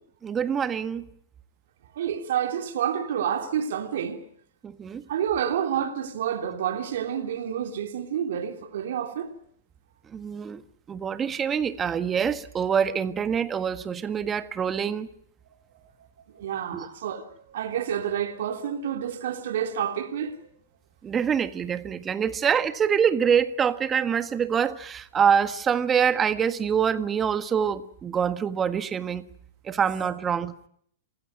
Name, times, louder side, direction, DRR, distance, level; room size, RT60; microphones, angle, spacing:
voice 1, 0.2-1.0 4.6-5.0 10.1-10.6 10.9-15.1 16.7-16.9 21.0-29.2 29.6-30.5, right 7 dB, 20° right, 1.6 m, -25 dB
voice 2, 1.9-4.2 5.1-9.3 16.3-17.3 17.5-20.3 29.7-29.8, right 9 dB, 65° right, 3.2 m, -29 dB
28.5 x 16.5 x 9.6 m
hypercardioid pair, 120°, 0 cm